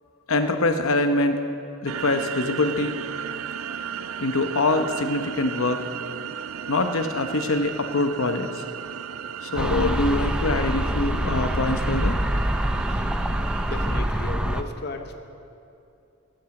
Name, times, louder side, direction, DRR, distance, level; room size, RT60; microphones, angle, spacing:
voice 1, 0.3-1.4 1.8-3.0 4.2-5.8 6.7-8.5 9.4-12.2, left 2 dB, 80° left, 7 dB, 0.9 m, -24 dB
sound 1, 1.9-14.0, right 8 dB, 85° right, 0.4 m, -35 dB
sound 2, 9.6-14.6, equal, 5° right, 0.4 m, -25 dB
voice 2, 13.7-15.1, left 3 dB, 50° left, 5 dB, 0.8 m, -34 dB
15.0 x 9.0 x 7.7 m, 2.6 s
head